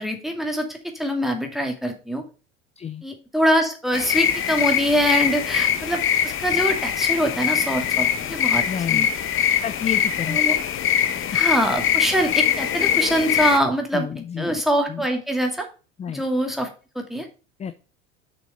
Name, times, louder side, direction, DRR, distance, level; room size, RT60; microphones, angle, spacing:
voice 1, 0.0-2.2 3.0-8.6 8.9-9.1 10.3-10.6 11.3-14.1 14.4-15.7 16.1-16.7 17.0-17.3, equal, ahead, 3 dB, 2.3 m, -24 dB
sound 1, 3.9-13.6, left 9 dB, 35° left, 1.1 m, -22 dB
voice 2, 8.6-9.1 9.6-10.4 13.9-14.6 14.9-15.1 16.0-16.2 17.6-17.7, left 8 dB, 20° left, 11 dB, 0.6 m, -30 dB
7.2 x 6.0 x 5.4 m, 0.34 s
figure-of-eight pair, 70°, 37 cm